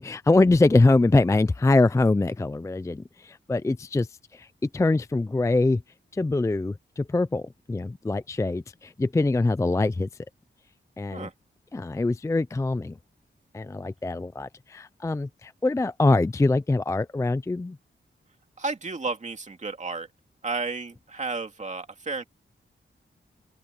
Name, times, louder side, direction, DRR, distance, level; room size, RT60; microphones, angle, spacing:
voice 1, 0.0-4.5 4.7-5.8 6.1-10.1 11.0-11.3 11.7-13.0 13.5-17.8, left 2 dB, 15° left, 0.4 m, -23 dB
voice 2, 18.6-20.1 20.4-22.2, right 3 dB, 35° right, 2.4 m, -32 dB
open air
wide cardioid pair, 145°, 20 cm